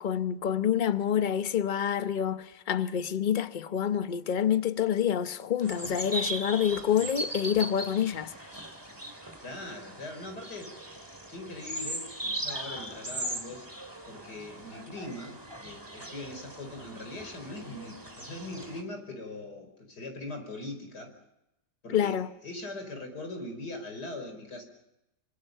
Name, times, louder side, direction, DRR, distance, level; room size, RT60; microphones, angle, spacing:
voice 1, 0.0-8.3 21.9-22.3, left 9 dB, 40° left, 0.8 m, -27 dB
sound 1, 5.6-18.8, right 1 dB, 15° right, 2.6 m, -39 dB
voice 2, 9.4-10.8 11.3-21.1 21.8-22.2 22.4-24.6, left 2 dB, 80° left, 5.7 m, -41 dB
27.0 x 25.0 x 5.5 m
omnidirectional pair, 1.7 m